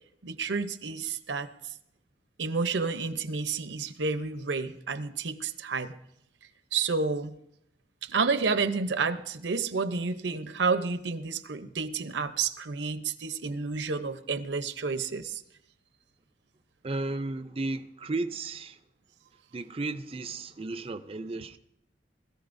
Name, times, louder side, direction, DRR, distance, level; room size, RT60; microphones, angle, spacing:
voice 1, 0.2-1.5 2.4-5.9 6.7-7.4 8.0-15.4, right 4 dB, 85° right, 0.7 m, -30 dB
voice 2, 16.8-18.8 19.5-21.6, right 2 dB, 30° right, 0.4 m, -34 dB
20.5 x 14.0 x 2.6 m
head